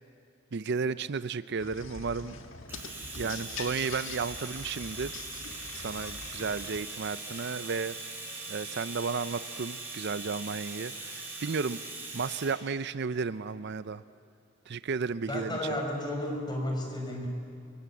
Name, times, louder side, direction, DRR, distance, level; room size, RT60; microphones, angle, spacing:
voice 1, 0.5-2.4 3.2-5.2 5.7-8.0 8.5-11.8 12.1-14.0 14.7-15.6, right 5 dB, 55° right, 14 dB, 0.5 m, -33 dB
sound 1, 1.6-6.8, left 4 dB, 70° left, 1.7 m, -43 dB
Domestic sounds home sounds, 2.7-12.6, right 3 dB, 10° right, 5.6 m, -41 dB
voice 2, 15.3-17.3, left 1 dB, 20° left, 2 dB, 5.0 m, -33 dB
29.5 x 23.5 x 8.3 m, 2.6 s
head